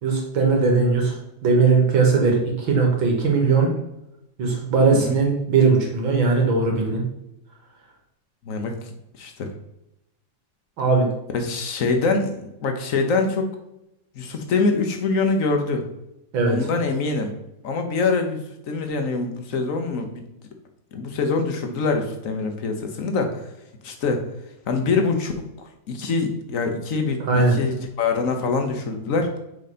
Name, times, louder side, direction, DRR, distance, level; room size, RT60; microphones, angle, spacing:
voice 1, 0.0-1.2 1.4-3.7 4.4-7.0 10.8-11.1 16.3-16.6 27.3-27.5, right 4 dB, 90° right, 0 dB, 2.5 m, -19 dB
voice 2, 8.4-8.9 9.2-9.5 11.3-13.5 14.1-15.8 16.5-17.3 17.6-18.4 18.7-20.2 20.9-23.5 23.8-24.2 24.7-29.3, left 4 dB, 50° left, 5 dB, 1.2 m, -24 dB
6.6 x 4.9 x 4.2 m, 0.87 s
omnidirectional pair, 2.1 m